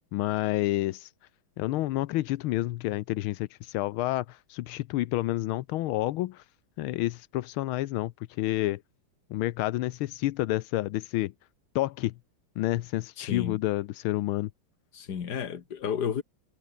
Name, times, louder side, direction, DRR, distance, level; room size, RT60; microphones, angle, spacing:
voice 1, 0.1-1.1 1.6-6.4 6.8-8.1 8.4-8.8 9.3-11.3 11.7-12.1 12.6-14.5, left 16 dB, 85° left, 1.5 m, -29 dB
voice 2, 13.2-13.6 14.9-16.2, left 8 dB, 55° left, 2.1 m, -32 dB
omnidirectional pair, 2.3 m